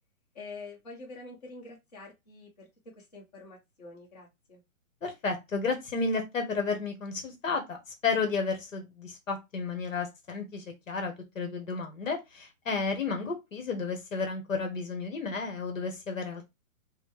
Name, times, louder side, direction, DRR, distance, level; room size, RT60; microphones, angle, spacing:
voice 1, 0.3-2.7 2.9-4.6, left 3 dB, 30° left, -4 dB, 1.3 m, -46 dB
voice 2, 5.0-7.8 8.0-16.4, left 4 dB, 65° left, 5 dB, 1.2 m, -32 dB
3.9 x 2.2 x 3.2 m, 0.22 s
hypercardioid pair, 175°, 42 cm